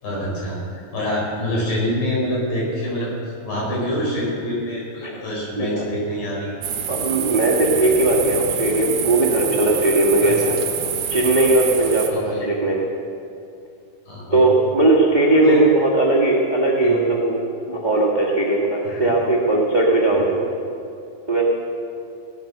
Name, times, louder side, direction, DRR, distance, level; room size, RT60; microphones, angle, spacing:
voice 1, 0.0-3.2 3.4-6.6 10.2-10.4 12.1-12.4 14.1-14.4 15.4-15.7 16.8-17.0 18.8-19.1 20.1-20.2, equal, 70° left, -4 dB, 6.4 m, -26 dB
sound 1, 6.6-12.1, right 7 dB, 65° right, 2.2 m, -26 dB
voice 2, 6.9-10.6 11.1-12.8 14.3-20.4 21.3-21.5, right 2 dB, 30° right, -3 dB, 0.8 m, -18 dB
17.0 x 11.5 x 6.5 m, 2.6 s
omnidirectional pair, 4.1 m